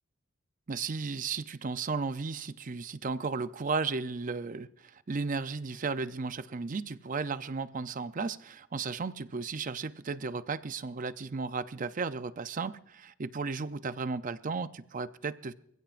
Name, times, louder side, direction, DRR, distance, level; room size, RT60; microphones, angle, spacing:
voice 1, 0.7-15.5, right 4 dB, 40° right, 13 dB, 0.5 m, -34 dB
27.0 x 16.0 x 2.5 m, 0.79 s
head